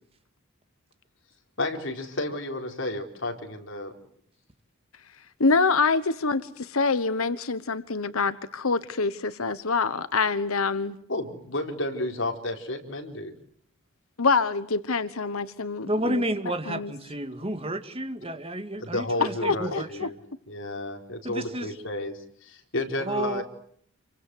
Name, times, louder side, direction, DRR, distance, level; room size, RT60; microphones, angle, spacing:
voice 1, 1.6-3.9 11.1-13.3 18.8-20.2 20.5-23.4, left 2 dB, 60° left, 3 dB, 4.3 m, -32 dB
voice 2, 5.4-11.0 14.2-16.2 16.7-16.9 19.4-20.1, left 4 dB, 85° left, 12 dB, 1.2 m, -25 dB
voice 3, 15.9-20.1 21.2-21.7 23.0-23.4, right 1 dB, 25° right, 8 dB, 2.0 m, -31 dB
28.5 x 23.5 x 7.9 m, 0.65 s
head